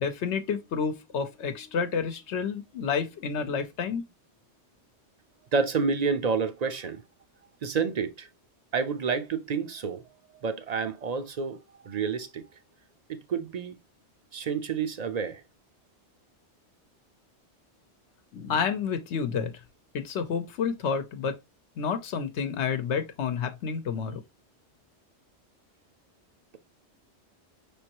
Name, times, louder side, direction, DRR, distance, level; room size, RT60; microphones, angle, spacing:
voice 1, 0.0-4.0 18.3-19.5 19.9-21.4 21.8-24.2, left 6 dB, 80° left, 1.0 m, -29 dB
voice 2, 5.5-7.0 7.6-8.3 8.7-10.0 10.4-12.5 13.1-13.8 14.3-15.4, right 5 dB, 50° right, 0.5 m, -29 dB
5.4 x 3.5 x 2.9 m
omnidirectional pair, 1.2 m